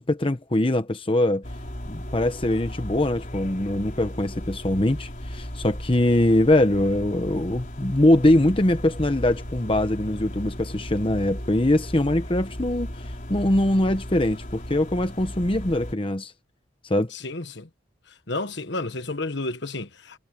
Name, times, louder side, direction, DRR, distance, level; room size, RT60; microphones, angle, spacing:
voice 1, 0.0-1.4 1.9-16.3 16.8-17.1, left 1 dB, 25° left, 0.9 m, -22 dB
sound 1, 1.4-16.0, equal, 40° left, 4.9 m, -36 dB
voice 2, 17.1-17.7 18.3-20.2, left 2 dB, 60° left, 1.5 m, -31 dB
head